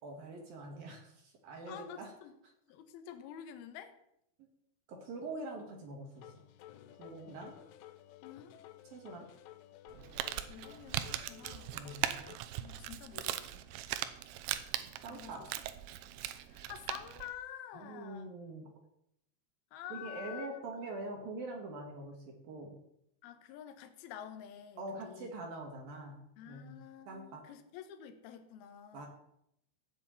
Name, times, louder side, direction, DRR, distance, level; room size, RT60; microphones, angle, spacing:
voice 1, 0.0-2.1 4.9-6.4 7.0-7.6 8.8-9.3 11.7-12.2 15.0-15.5 17.7-18.7 19.9-22.8 24.8-27.4 28.9-29.1, right 2 dB, 60° right, 1 dB, 3.1 m, -44 dB
voice 2, 1.7-2.3 2.7-4.0 8.2-8.5 10.5-11.8 12.6-13.7 15.1-15.5 16.5-18.3 19.7-20.6 23.2-25.3 26.4-29.1, left 10 dB, 70° left, 7 dB, 2.6 m, -49 dB
sound 1, 6.2-12.4, left 13 dB, 90° left, 3.2 m, -54 dB
Crumpling crinkling, 9.9-17.3, right 12 dB, 80° right, 3.0 m, -40 dB
15.5 x 6.0 x 8.4 m, 0.78 s
omnidirectional pair, 5.5 m